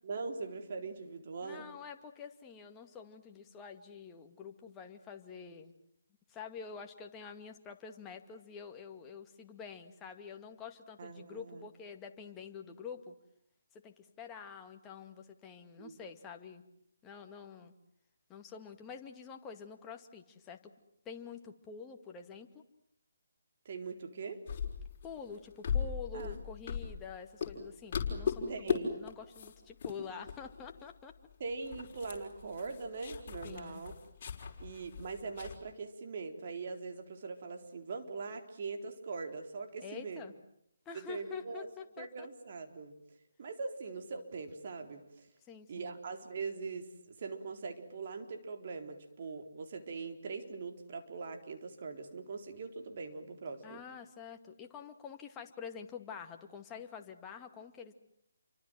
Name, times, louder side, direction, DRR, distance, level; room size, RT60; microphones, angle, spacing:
voice 1, 0.0-1.7 11.0-11.7 15.8-16.0 23.7-24.4 26.1-26.3 28.5-28.9 31.4-33.9 34.6-40.2 40.9-41.7 42.0-42.9 43.4-45.3 45.7-53.8, right 4 dB, 45° right, 5 dB, 4.1 m, -42 dB
voice 2, 1.4-5.8 6.3-13.1 13.7-16.6 17.0-17.7 18.3-20.6 21.1-22.6 25.0-31.1 33.4-33.8 39.8-40.3 40.9-42.3 45.5-45.9 53.6-57.9, left 6 dB, 15° left, 4 dB, 2.2 m, -47 dB
sound 1, 24.5-27.2 27.4-27.6 27.9-28.8 29.1-29.5 29.8-29.9 30.3-30.8 31.1-31.2 31.5-35.6, left 7 dB, 40° left, 5.7 m, -37 dB
29.5 x 25.0 x 7.7 m, 0.74 s
figure-of-eight pair, 155°, 0 cm